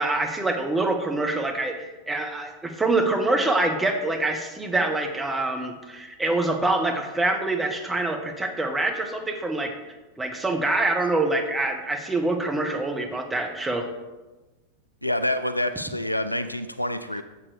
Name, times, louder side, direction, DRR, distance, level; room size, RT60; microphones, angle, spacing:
voice 1, 0.0-9.7 10.2-13.9, right 2 dB, 10° right, 4 dB, 0.9 m, -25 dB
voice 2, 15.0-17.2, left 1 dB, 90° left, 10 dB, 0.4 m, -27 dB
7.3 x 6.7 x 3.3 m, 1.1 s
figure-of-eight pair, 90°, 0 cm